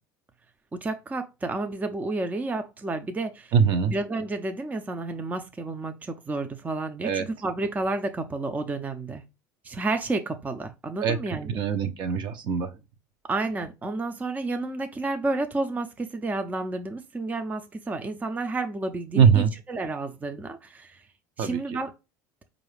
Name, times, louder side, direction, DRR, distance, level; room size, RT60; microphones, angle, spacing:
voice 1, 0.7-3.5 3.8-9.2 9.6-11.6 13.2-21.0 21.4-21.9, right 2 dB, 15° right, 0.5 m, -31 dB
voice 2, 3.5-3.9 7.0-7.3 11.0-11.2 11.4-12.7 19.1-19.5 21.4-21.6, right 7 dB, 50° right, 0.7 m, -22 dB
4.6 x 2.5 x 3.3 m
hypercardioid pair, 80°, 10 cm